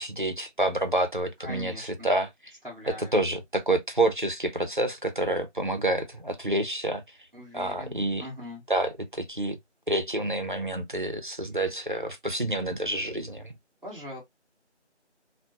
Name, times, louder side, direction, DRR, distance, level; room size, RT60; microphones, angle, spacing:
voice 1, 0.0-2.3 3.1-7.0 7.5-8.3 8.7-9.6 9.9-13.6, right 1 dB, 45° right, 0.5 m, -28 dB
voice 2, 1.4-2.1 2.6-3.2 7.3-8.6 13.8-14.2, left 1 dB, ahead, 0.9 m, -41 dB
2.4 x 2.1 x 2.7 m
figure-of-eight pair, 180°, 36 cm